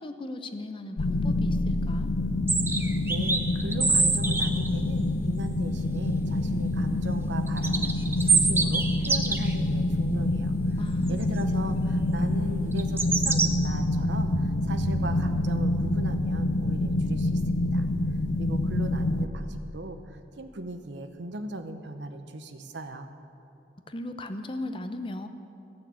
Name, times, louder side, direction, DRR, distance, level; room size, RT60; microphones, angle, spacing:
voice 1, 0.0-2.1 10.8-11.4 23.9-25.3, left 1 dB, 30° left, 8 dB, 0.7 m, -37 dB
sound 1, 1.0-19.3, left 2 dB, 70° left, 0.6 m, -27 dB
sound 2, 2.5-4.7 7.5-9.5 11.1-11.2 12.7-13.5, right 4 dB, 15° right, 0.6 m, -25 dB
voice 2, 2.8-8.0 8.3-10.6 11.1-17.9 18.4-23.1, right 1 dB, 90° right, 8 dB, 0.9 m, -38 dB
sound 3, 13.1-17.6, right 4 dB, 50° right, 0.3 m, -38 dB
14.5 x 6.5 x 8.4 m, 2.8 s
head